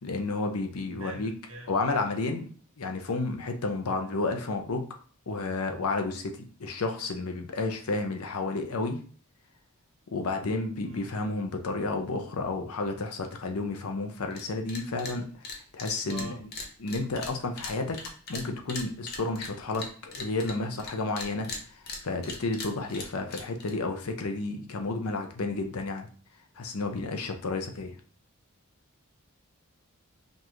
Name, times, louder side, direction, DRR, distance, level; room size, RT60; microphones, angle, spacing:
voice 1, 0.0-1.3 1.7-2.5 2.8-4.8 5.3-9.0 10.1-16.5 16.8-18.0 18.3-26.1 26.6-28.0, left 3 dB, 85° left, 5 dB, 0.7 m, -31 dB
voice 2, 0.9-1.7 10.8-11.1 16.1-16.4, right 2 dB, 75° right, 0 dB, 1.3 m, -43 dB
sound 1, 14.3-14.4 14.7-15.2 15.4-20.9 21.2-23.7, left 3 dB, 45° left, 0.7 m, -39 dB
5.2 x 2.5 x 3.0 m, 0.42 s
head